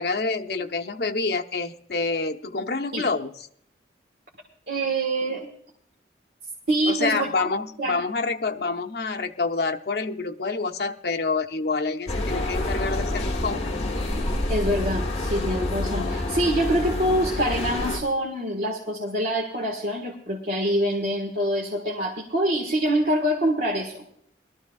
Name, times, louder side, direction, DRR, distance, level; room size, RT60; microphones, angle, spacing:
voice 1, 0.0-3.3 6.9-13.7, left 3 dB, 65° left, 4 dB, 0.8 m, -27 dB
voice 2, 4.7-5.5 6.7-7.5 7.8-8.0 14.5-24.1, right 1 dB, 60° right, -1 dB, 1.6 m, -25 dB
sound 1, 12.1-18.0, left 1 dB, 35° left, 1.5 m, -27 dB
21.0 x 13.5 x 2.4 m, 0.65 s
head